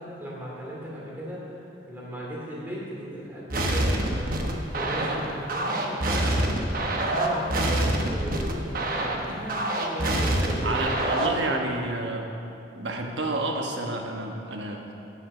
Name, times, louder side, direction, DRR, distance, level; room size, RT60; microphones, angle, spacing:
voice 1, 0.0-1.5 1.9-4.4 4.7-6.3 7.1-8.8 9.2-11.6, equal, 10° right, -5 dB, 2.7 m, -35 dB
sound 1, 3.5-11.5, right 1 dB, 50° right, 1.1 m, -26 dB
voice 2, 10.6-12.3 12.7-14.9, right 2 dB, 80° right, 2 dB, 1.3 m, -30 dB
10.0 x 7.7 x 6.6 m, 2.7 s
head